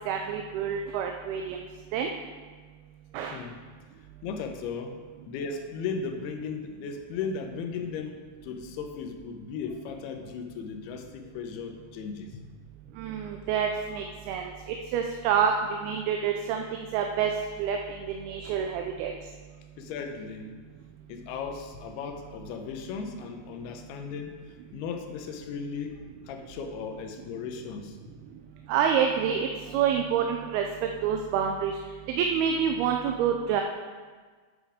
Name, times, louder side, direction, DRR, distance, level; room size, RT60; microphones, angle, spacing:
voice 1, 0.1-1.7 1.9-2.1 3.1-3.4 13.0-15.5 15.8-16.6 16.9-17.3 17.6-19.1 28.7-31.8 32.1-33.6, right 8 dB, 80° right, 3 dB, 2.4 m, -27 dB
voice 2, 4.2-5.0 5.3-12.4 19.8-20.5 21.1-24.4 24.7-26.0 26.3-28.0, left 5 dB, 80° left, 5 dB, 2.7 m, -36 dB
9.1 x 7.2 x 4.9 m, 1.5 s
omnidirectional pair, 4.7 m